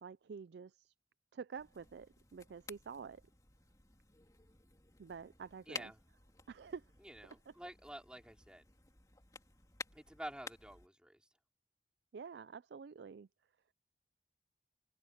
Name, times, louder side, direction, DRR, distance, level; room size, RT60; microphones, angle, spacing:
voice 1, 0.0-0.9 1.3-3.2 5.0-5.9 6.5-6.9 7.2-7.5 12.1-13.3, right 6 dB, 65° right, 0.4 m, -48 dB
sound 1, 1.5-10.9, left 3 dB, 20° left, 3.2 m, -54 dB
voice 2, 5.7-6.0 7.0-8.6 9.9-11.3, right 1 dB, 5° right, 3.5 m, -49 dB
head